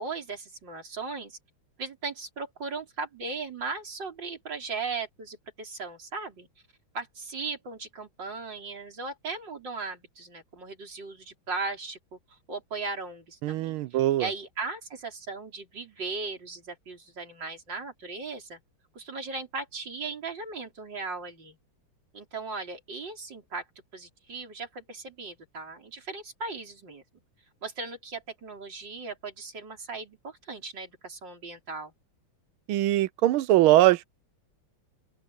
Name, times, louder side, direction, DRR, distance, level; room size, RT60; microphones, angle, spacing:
voice 1, 0.0-1.4 1.8-6.5 6.9-12.0 12.5-18.6 18.9-21.6 22.1-23.6 23.9-27.0 27.6-31.9, right 4 dB, 60° right, 5.2 m, -37 dB
voice 2, 13.4-14.3 32.7-34.0, right 15 dB, 85° right, 1.5 m, -21 dB
open air
omnidirectional pair, 2.2 m